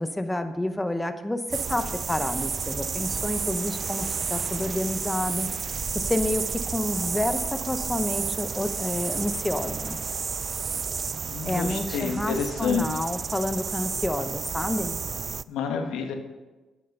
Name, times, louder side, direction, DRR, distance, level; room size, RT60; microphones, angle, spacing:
voice 1, 0.0-5.5 5.9-10.0 11.4-15.0, left 1 dB, 10° left, 8 dB, 0.8 m, -29 dB
sound 1, 1.5-15.4, right 5 dB, 45° right, 0.3 m, -31 dB
voice 2, 11.2-12.9 15.5-16.2, left 6 dB, 85° left, 5 dB, 1.3 m, -29 dB
9.4 x 8.8 x 5.4 m, 1.2 s
cardioid pair, 80°, 0 cm